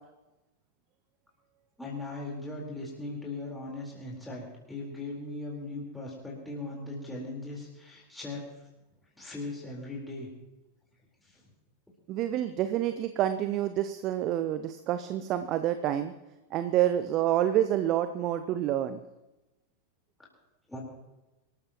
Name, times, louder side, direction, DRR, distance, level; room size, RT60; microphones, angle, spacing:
voice 1, 1.8-8.4 9.1-10.3 11.2-11.4 20.7-20.8, left 2 dB, 5° left, -4 dB, 4.2 m, -39 dB
voice 2, 12.1-16.1 16.5-19.0, right 12 dB, 35° right, 11 dB, 0.7 m, -28 dB
25.5 x 14.0 x 3.0 m, 1.0 s
figure-of-eight pair, 90°, 0 cm